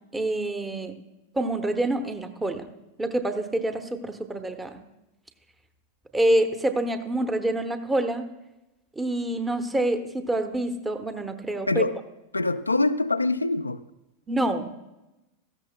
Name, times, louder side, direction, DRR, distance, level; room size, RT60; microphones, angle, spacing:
voice 1, 0.1-0.9 1.3-2.7 3.0-4.8 6.1-8.3 9.0-11.9 14.3-14.8, right 1 dB, 10° right, 8 dB, 0.9 m, -26 dB
voice 2, 12.3-13.8, left 2 dB, 80° left, 10 dB, 0.4 m, -24 dB
17.0 x 14.0 x 2.2 m, 0.98 s
figure-of-eight pair, 90°, 0 cm